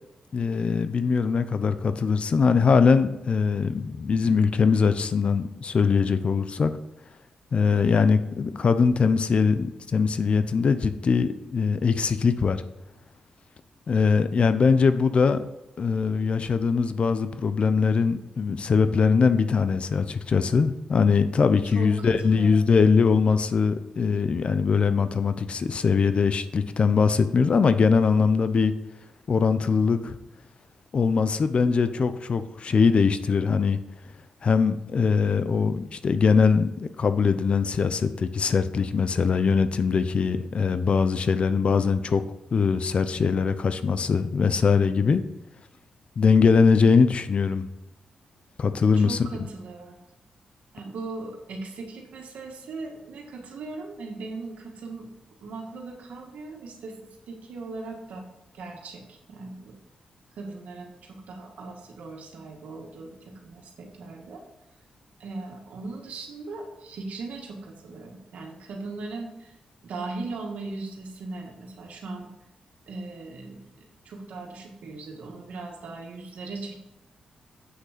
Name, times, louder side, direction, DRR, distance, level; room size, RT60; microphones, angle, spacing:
voice 1, 0.3-6.7 7.5-12.6 13.9-15.4 15.8-28.7 29.3-30.2 30.9-33.8 34.4-42.2 42.5-45.2 46.2-47.7 48.6-49.2, left 5 dB, 55° left, 12 dB, 0.7 m, -22 dB
voice 2, 21.6-22.5 49.0-50.0 50.7-55.1 55.4-57.0 57.3-58.3 58.5-59.7 60.4-64.4 65.2-69.6 69.8-72.3 72.9-76.8, right 3 dB, 85° right, 1 dB, 1.9 m, -38 dB
8.1 x 6.3 x 5.1 m, 0.95 s
cardioid pair, 80°, 2 cm